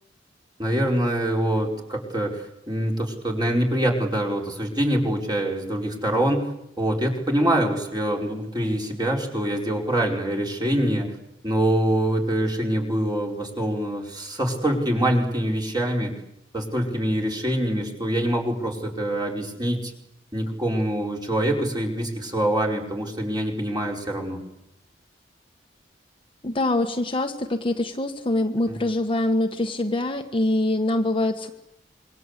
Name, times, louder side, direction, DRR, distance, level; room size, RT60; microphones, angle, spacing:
voice 1, 0.6-6.5 6.8-11.1 11.4-16.2 16.5-19.9 20.3-24.4 28.7-28.8, right 1 dB, 25° right, 0 dB, 4.9 m, -25 dB
voice 2, 26.4-31.5, left 1 dB, 30° left, 5 dB, 1.4 m, -24 dB
26.5 x 23.5 x 8.2 m, 0.83 s
head